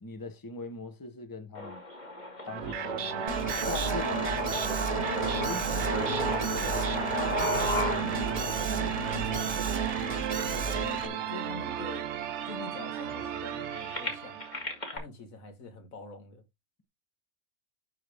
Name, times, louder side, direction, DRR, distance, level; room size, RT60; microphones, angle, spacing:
voice 1, 0.0-1.8 2.4-3.3 3.7-4.7 5.4-5.6 5.9-6.9 7.2-9.8 11.0-11.5, left 3 dB, 15° left, 0.9 m, -42 dB
sound 1, 1.5-11.5 12.2-12.3 12.5-15.0, left 1 dB, 35° left, 2.4 m, -35 dB
sound 2, 2.5-14.7, right 10 dB, 65° right, 0.9 m, -34 dB
Alarm, 3.3-11.1, right 3 dB, 30° right, 1.1 m, -34 dB
voice 2, 5.3-6.1 10.4-12.1 12.4-14.4 14.9-16.4, left 3 dB, 90° left, 2.1 m, -45 dB
11.5 x 3.9 x 3.5 m
omnidirectional pair, 1.4 m